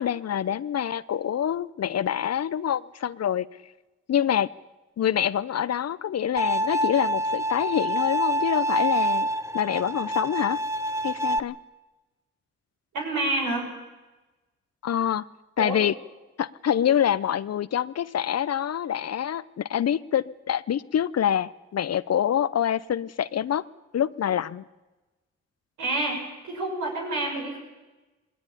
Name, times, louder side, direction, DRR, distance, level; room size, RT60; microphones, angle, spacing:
voice 1, 0.0-3.5 4.1-4.5 5.0-9.3 9.5-10.6 11.0-11.6 14.8-15.2 15.6-15.9 16.4-23.6 23.9-24.6, left 9 dB, 60° left, 17 dB, 0.7 m, -26 dB
Bowed string instrument, 6.4-11.4, right 1 dB, 10° right, 1.2 m, -26 dB
voice 2, 12.9-13.7 15.6-15.8 25.8-26.2 26.4-27.6, right 2 dB, 90° right, 0 dB, 6.6 m, -28 dB
19.5 x 17.0 x 9.9 m, 1.1 s
supercardioid pair, 50°, 29 cm